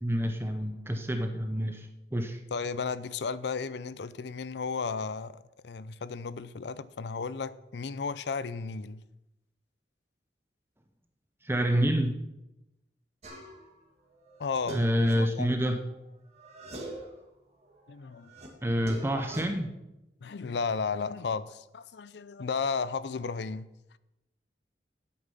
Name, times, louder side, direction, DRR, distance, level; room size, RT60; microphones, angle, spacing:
voice 1, 0.0-2.4 11.4-12.2 14.7-15.8 18.6-19.7, equal, 15° right, 0.7 m, -28 dB
voice 2, 2.5-9.0 14.4-15.8 17.9-18.3 20.2-23.7, left 5 dB, 70° left, 0.5 m, -34 dB
sound 1, 13.2-13.7 14.2-16.0 16.3-17.2 17.6-19.4, right 2 dB, 35° right, 1.9 m, -44 dB
9.8 x 8.6 x 5.6 m
head